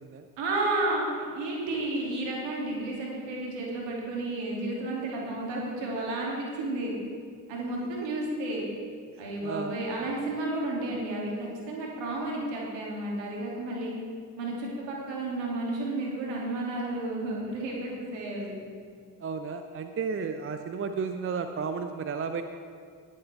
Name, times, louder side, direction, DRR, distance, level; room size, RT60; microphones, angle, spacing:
voice 1, 0.4-6.9 7.5-8.7 9.2-13.9 14.4-18.6, right 2 dB, 60° right, -3 dB, 2.7 m, -32 dB
voice 2, 9.1-9.8 19.2-22.4, right 5 dB, 25° right, 8 dB, 0.6 m, -33 dB
19.0 x 7.4 x 3.5 m, 2.1 s
figure-of-eight pair, 40°, 50 cm